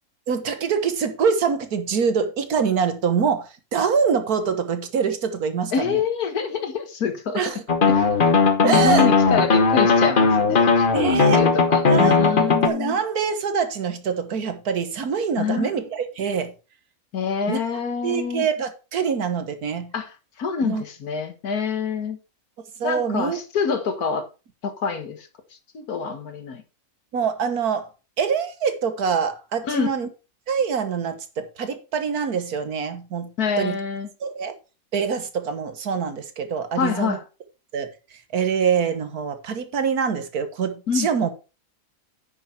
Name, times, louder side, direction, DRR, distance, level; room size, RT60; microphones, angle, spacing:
voice 1, 0.3-6.0 7.3-7.6 8.6-9.1 10.9-11.4 11.9-12.2 12.7-16.5 17.5-17.6 18.0-19.9 20.6-20.8 22.8-23.4 27.1-27.9 28.2-30.1 30.5-31.2 31.6-33.3 33.6-33.8 34.2-34.5 34.9-37.2 37.7-37.9 38.3-41.3, right 6 dB, 85° right, 1.8 m, -24 dB
voice 2, 5.7-7.4 7.9-8.1 8.6-13.0 15.4-15.9 17.1-18.5 19.9-22.2 22.8-24.3 24.6-25.3 25.7-26.6 29.7-29.9 33.4-34.1 36.8-37.2 40.9-41.1, left 6 dB, 90° left, 1.9 m, -26 dB
sound 1, 7.7-12.7, left 4 dB, 40° left, 1.1 m, -18 dB
10.0 x 6.5 x 4.3 m
omnidirectional pair, 1.5 m